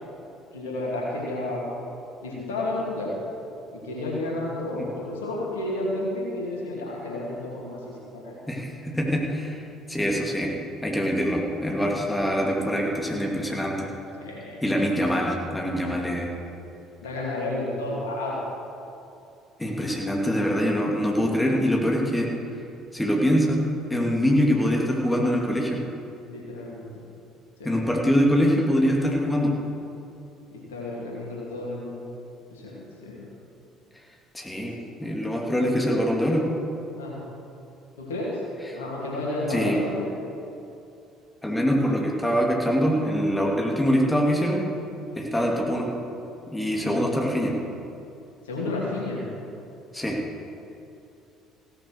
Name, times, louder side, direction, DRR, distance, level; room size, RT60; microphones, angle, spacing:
voice 1, 0.5-1.7 2.2-3.1 3.7-7.8 8.1-8.4 14.2-14.6 15.8-16.0 17.0-18.4 26.3-26.8 27.6-27.7 30.7-32.0 32.5-32.7 33.0-33.2 37.0-37.1 38.0-38.4 38.7-40.1 46.7-47.1 48.4-49.2, left 2 dB, 80° left, -5 dB, 2.8 m, -31 dB
voice 2, 8.5-9.6 9.9-10.5 10.8-13.9 14.6-16.3 19.6-22.3 22.9-23.6 23.9-25.8 27.6-29.5 34.3-36.4 39.5-39.8 41.4-44.6 45.2-45.9 46.5-47.5 49.9-50.2, equal, 10° left, -1 dB, 2.5 m, -24 dB
17.0 x 6.5 x 6.4 m, 2.7 s
hypercardioid pair, 55°, 0 cm